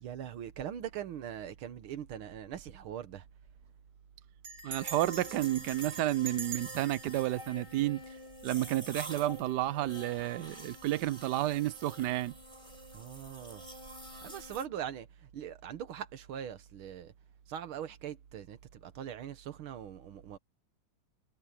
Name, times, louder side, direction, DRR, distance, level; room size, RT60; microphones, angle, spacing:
voice 1, 0.0-3.3 12.9-13.6 14.2-17.1 17.5-20.4, right 9 dB, 90° right, 2.0 m, -41 dB
Bell, 2.6-2.7 3.0-3.1 3.3-3.7 4.4-8.5, right 5 dB, 40° right, 2.7 m, -45 dB
voice 2, 4.6-8.0 8.4-12.3, right 14 dB, 65° right, 1.2 m, -31 dB
sound 1, 4.7-14.7, right 1 dB, 15° right, 4.6 m, -48 dB
omnidirectional pair, 2.2 m